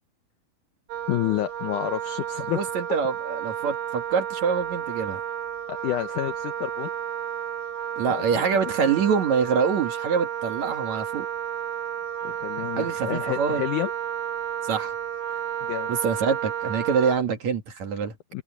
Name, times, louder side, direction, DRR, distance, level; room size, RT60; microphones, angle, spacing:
Wind instrument woodwind instrument, 0.9-17.2, right 9 dB, 80° right, 4.6 m, -32 dB
voice 1, 1.1-2.6 5.7-6.9 8.1-8.5 12.2-13.9 15.6-15.9 18.3-18.4, left 14 dB, 80° left, 1.8 m, -29 dB
voice 2, 2.5-5.2 8.0-11.3 12.8-13.6 14.6-14.9 15.9-18.1, right 6 dB, 50° right, 2.8 m, -25 dB
open air
omnidirectional pair, 4.5 m